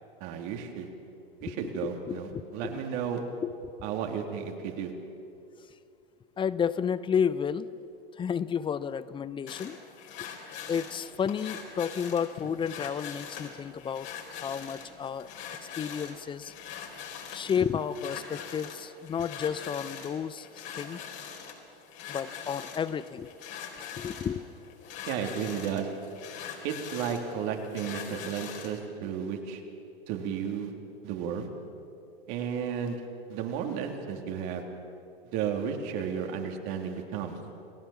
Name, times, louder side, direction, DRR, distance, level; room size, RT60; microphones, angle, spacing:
voice 1, 0.2-0.9 1.4-3.2 3.8-4.9 25.1-25.9 26.6-29.6 30.1-30.7 31.0-31.5 32.3-33.0 33.3-34.6 35.3-37.4, right 7 dB, 45° right, 3 dB, 3.3 m, -33 dB
voice 2, 1.5-2.7 3.4-3.7 6.4-7.7 8.1-9.8 10.7-14.1 14.4-15.3 15.8-16.5 17.3-21.0 22.1-23.3 23.8-24.5, left 7 dB, 15° left, 17 dB, 0.7 m, -32 dB
sound 1, 9.5-28.8, left 7 dB, 40° left, 4.2 m, -43 dB
29.5 x 18.0 x 7.3 m, 2.6 s
hypercardioid pair, 105°, 30 cm